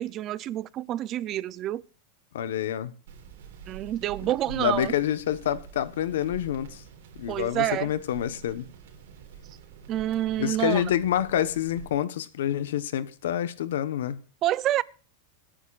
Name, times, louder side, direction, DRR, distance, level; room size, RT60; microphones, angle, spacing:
voice 1, 0.0-1.8 3.7-4.9 7.3-7.9 9.9-10.9 14.4-14.8, right 13 dB, 30° right, 0.5 m, -28 dB
voice 2, 2.3-2.9 4.6-6.8 7.2-8.7 10.4-14.2, left 11 dB, 85° left, 1.1 m, -27 dB
sound 1, 3.1-11.9, right 7 dB, 75° right, 3.9 m, -46 dB
26.5 x 10.0 x 2.5 m
supercardioid pair, 160°, 0 cm